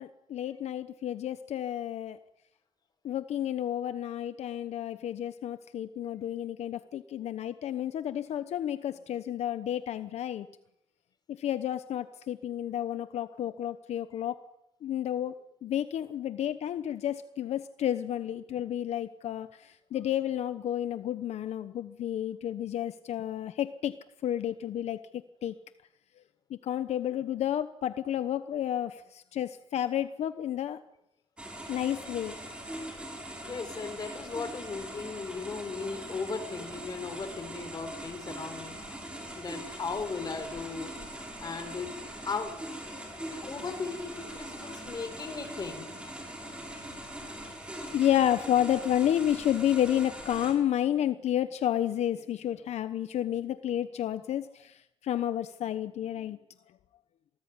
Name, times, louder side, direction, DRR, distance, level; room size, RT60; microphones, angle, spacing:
voice 1, 0.0-2.2 3.0-10.5 11.4-14.4 14.8-15.3 15.6-24.0 24.2-25.0 25.4-25.5 26.5-30.8 31.7-32.3 47.9-56.4, left 11 dB, 75° left, 11 dB, 1.0 m, -31 dB
sound 1, 31.4-50.5, right 1 dB, 10° right, 6.9 m, -42 dB
voice 2, 33.4-40.9 41.4-42.6 43.3-46.1, left 4 dB, 35° left, 8 dB, 4.7 m, -37 dB
27.5 x 19.5 x 9.7 m, 0.86 s
cardioid pair, 125°, 11 cm